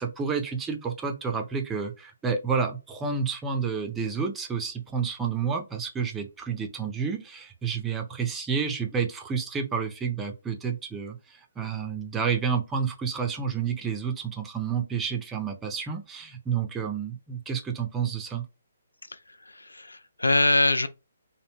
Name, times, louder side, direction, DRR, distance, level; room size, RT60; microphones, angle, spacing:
voice 1, 0.0-18.4, right 6 dB, 10° right, 0.5 m, -30 dB
voice 2, 19.1-20.9, left 2 dB, 90° left, 0.3 m, -24 dB
2.6 x 2.1 x 2.9 m
figure-of-eight pair, 135°, 0 cm